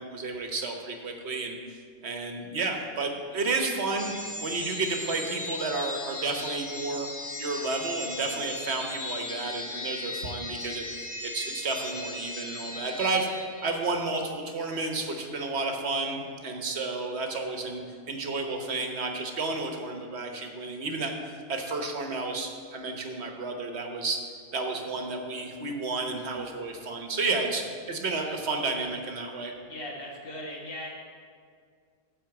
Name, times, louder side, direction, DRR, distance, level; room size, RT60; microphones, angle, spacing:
voice 1, 0.0-1.6 2.0-4.1 4.4-7.1 7.4-17.8 18.1-24.2 24.5-29.5, right 3 dB, 75° right, 3 dB, 1.4 m, -31 dB
sound 1, 4.0-13.8, left 1 dB, 30° left, 1.3 m, -37 dB
voice 2, 29.7-30.9, left 1 dB, 60° left, -3 dB, 1.9 m, -38 dB
12.5 x 4.4 x 7.8 m, 2.1 s
omnidirectional pair, 1.1 m